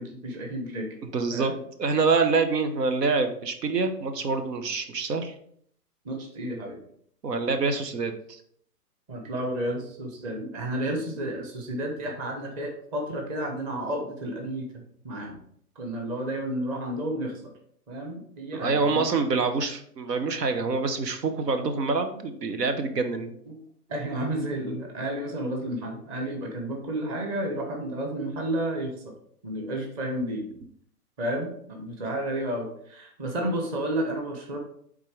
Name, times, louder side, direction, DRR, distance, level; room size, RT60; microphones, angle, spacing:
voice 1, 0.0-1.0 1.3-1.6 6.0-6.8 9.1-15.4 15.8-17.5 17.9-19.2 23.5-23.6 23.9-28.9 29.4-30.5 31.2-34.6, right 1 dB, 20° right, 2 dB, 1.0 m, -31 dB
voice 2, 1.0-1.5 1.8-5.3 7.2-8.4 18.5-23.3, right 4 dB, 85° right, 8 dB, 1.0 m, -26 dB
8.3 x 3.7 x 3.2 m, 0.64 s
hypercardioid pair, 145°, 47 cm